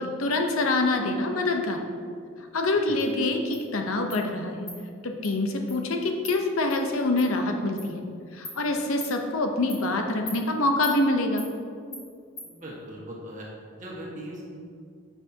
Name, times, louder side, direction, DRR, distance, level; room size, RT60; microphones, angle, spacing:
voice 1, 0.0-1.8 2.5-4.7 5.0-8.0 8.3-11.4, left 2 dB, 80° left, 4 dB, 0.7 m, -25 dB
Insect, 3.0-3.1 3.5-3.6 4.1-4.2 4.7-4.8 5.2-5.3 5.7-5.8 6.2-6.3 6.7-6.8 7.2-7.3 7.8-7.9 8.4-8.6 9.0-9.1 9.7-9.8 10.3-10.4 10.8-11.0 11.4-11.5 11.9-12.0 12.4-12.5, left 2 dB, 20° left, 1.2 m, -39 dB
voice 2, 12.4-13.5 13.8-14.4, right 1 dB, 35° right, -3 dB, 1.4 m, -39 dB
9.9 x 5.9 x 2.8 m, 2.3 s
head